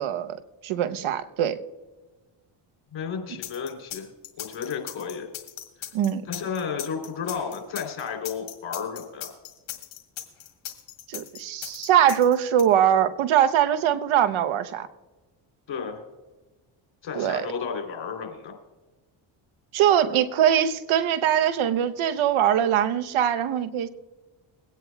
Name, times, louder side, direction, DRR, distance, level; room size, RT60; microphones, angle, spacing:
voice 1, 0.0-1.6 3.3-3.4 5.9-6.2 11.1-14.9 17.1-17.5 19.7-23.9, right 10 dB, 70° right, 10 dB, 1.0 m, -22 dB
voice 2, 2.9-4.1 4.4-5.3 5.8-5.9 6.3-9.3 15.7-16.0 17.0-18.5, left 6 dB, 65° left, 2 dB, 3.3 m, -32 dB
sound 1, 3.4-12.6, left 12 dB, 85° left, 1.8 m, -38 dB
22.0 x 9.3 x 2.3 m, 1.2 s
supercardioid pair, 65°, 49 cm